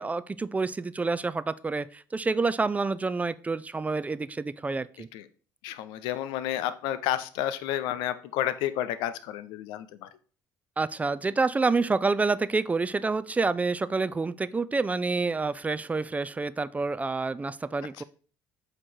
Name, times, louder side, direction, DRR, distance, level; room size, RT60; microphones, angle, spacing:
voice 1, 0.0-5.1 10.8-18.0, right 3 dB, 20° right, 16 dB, 0.3 m, -28 dB
voice 2, 5.6-10.1 17.8-18.0, left 12 dB, 80° left, 13 dB, 0.5 m, -31 dB
7.7 x 3.0 x 4.3 m, 0.42 s
supercardioid pair, 80°, 8 cm